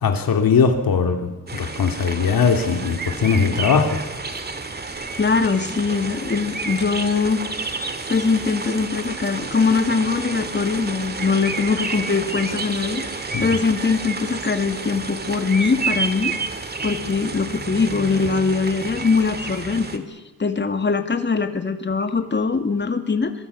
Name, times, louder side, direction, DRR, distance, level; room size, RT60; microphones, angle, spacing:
voice 1, 0.0-4.0 13.3-13.5, left 5 dB, 90° left, 4 dB, 2.6 m, -20 dB
sound 1, 1.5-20.0, right 3 dB, 30° right, 2.1 m, -30 dB
voice 2, 5.2-7.4 8.1-16.3 16.8-23.3, left 4 dB, 30° left, 7 dB, 2.2 m, -22 dB
25.0 x 24.0 x 8.4 m, 1.2 s
wide cardioid pair, 165°, 34 cm